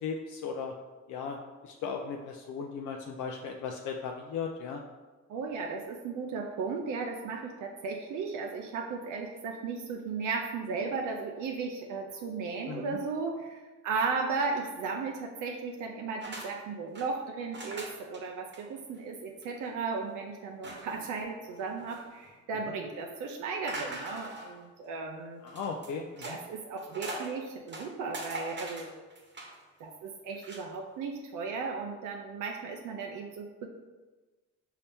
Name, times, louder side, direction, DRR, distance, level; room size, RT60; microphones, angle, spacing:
voice 1, 0.0-0.7 1.1-1.4 1.6-4.8 12.7-13.0 22.7-22.8 25.4-26.4, left 6 dB, 80° left, 2 dB, 0.5 m, -37 dB
voice 2, 5.3-25.4 26.2-29.0 29.8-33.7, right 4 dB, 80° right, 2 dB, 0.6 m, -35 dB
sound 1, 16.2-16.5 16.7-17.1 17.5-18.2 18.5-18.6 19.0-19.1 19.4-19.7 20.6-21.1 21.6-22.3 23.7-24.6 25.5-26.4 26.7-27.3 27.7-29.6 30.3-30.6, right 2 dB, 35° right, 1.0 m, -42 dB
5.5 x 2.8 x 3.4 m, 1.2 s
cardioid pair, 90°, 30 cm